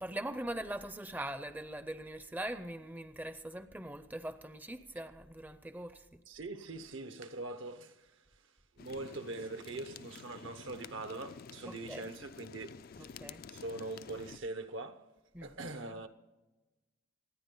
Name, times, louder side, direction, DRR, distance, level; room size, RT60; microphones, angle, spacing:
voice 1, 0.0-6.2 11.6-12.1 13.0-13.4 15.3-15.5, right 1 dB, 10° right, 0.5 m, -42 dB
voice 2, 6.3-8.1 8.8-13.1 13.5-15.0 15.4-16.1, right 2 dB, 70° right, 1.0 m, -42 dB
sound 1, 8.8-14.4, left 6 dB, 50° left, 0.4 m, -51 dB
27.5 x 9.7 x 3.8 m
head